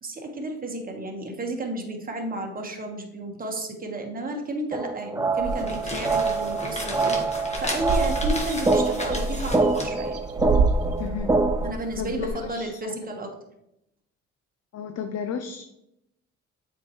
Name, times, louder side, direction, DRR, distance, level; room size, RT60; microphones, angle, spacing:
voice 1, 0.0-10.2 11.6-13.3, right 2 dB, 30° right, 3 dB, 1.3 m, -33 dB
sound 1, 4.7-11.7, right 3 dB, 10° right, 0.4 m, -25 dB
sound 2, 5.4-11.1, left 1 dB, 20° left, 1.4 m, -34 dB
sound 3, 5.4-6.2 6.6-6.7 6.9-7.2 7.5-12.5, right 3 dB, 55° right, 0.7 m, -28 dB
voice 2, 11.0-11.4 12.0-12.9 14.7-15.6, left 7 dB, 55° left, 7 dB, 0.6 m, -33 dB
7.3 x 4.6 x 3.1 m, 0.84 s
cardioid pair, 90°, 30 cm